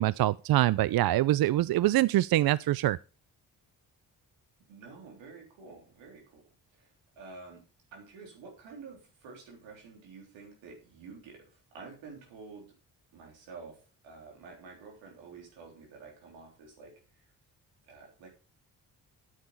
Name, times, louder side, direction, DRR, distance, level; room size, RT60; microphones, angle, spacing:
voice 1, 0.0-3.0, right 15 dB, 55° right, 0.5 m, -24 dB
voice 2, 4.7-7.7 7.9-12.7 13.1-17.0 17.8-18.3, right 4 dB, 85° right, 3.5 m, -49 dB
9.3 x 9.1 x 4.3 m
hypercardioid pair, 40°, 44 cm